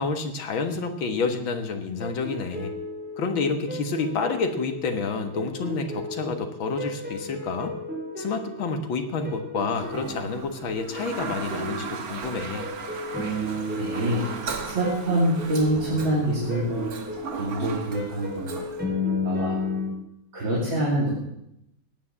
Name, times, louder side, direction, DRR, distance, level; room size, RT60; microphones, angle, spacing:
voice 1, 0.0-2.7 3.2-7.8 8.2-12.7, left 4 dB, 80° left, 7 dB, 2.3 m, -29 dB
sound 1, 2.0-19.9, left 1 dB, 5° right, 5.2 m, -34 dB
Toilet flush, 9.7-18.8, right 5 dB, 50° right, 1.7 m, -37 dB
voice 2, 13.7-14.3 14.7-16.9 17.4-18.6 19.2-19.6 20.3-21.1, right 1 dB, 75° right, -6 dB, 3.9 m, -25 dB
17.0 x 9.9 x 7.2 m, 0.83 s
omnidirectional pair, 2.2 m